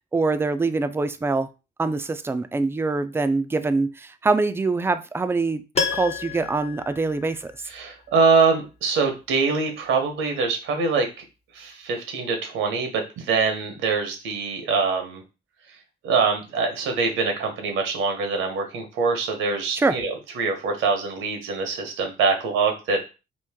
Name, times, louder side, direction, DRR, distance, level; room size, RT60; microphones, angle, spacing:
voice 1, 0.1-1.5 1.8-5.6 5.9-7.5 19.8-20.0, right 3 dB, 10° right, 10 dB, 0.3 m, -24 dB
Piano, 5.7-7.8 8.1-8.2, left 5 dB, 35° left, 0.6 m, -30 dB
voice 2, 7.7-11.1 11.5-15.2 16.0-23.1, right 4 dB, 85° right, 4 dB, 1.0 m, -24 dB
3.0 x 2.5 x 3.5 m, 0.30 s
cardioid pair, 90°, 20 cm